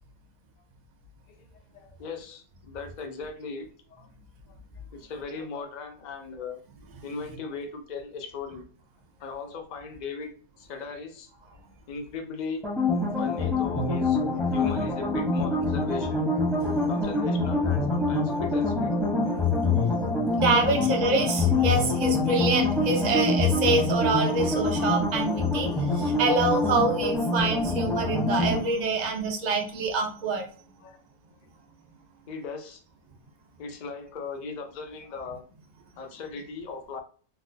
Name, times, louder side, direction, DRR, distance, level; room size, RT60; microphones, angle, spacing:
voice 1, 1.3-4.1 4.9-6.6 7.0-8.7 9.2-11.3 11.9-12.6 13.2-14.2 14.5-16.3 16.9-18.9 30.8-31.0 32.3-32.8 33.6-35.4 36.0-37.0, left 4 dB, 85° left, 4 dB, 0.4 m, -38 dB
sound 1, 12.6-28.6, left 3 dB, 5° left, 0.4 m, -25 dB
voice 2, 13.0-13.4 14.4-14.7 16.6-17.1 17.6-17.7 18.4-18.7 19.2-30.5, right 3 dB, 85° right, 2 dB, 0.3 m, -27 dB
3.9 x 2.2 x 2.6 m, 0.41 s
omnidirectional pair, 1.6 m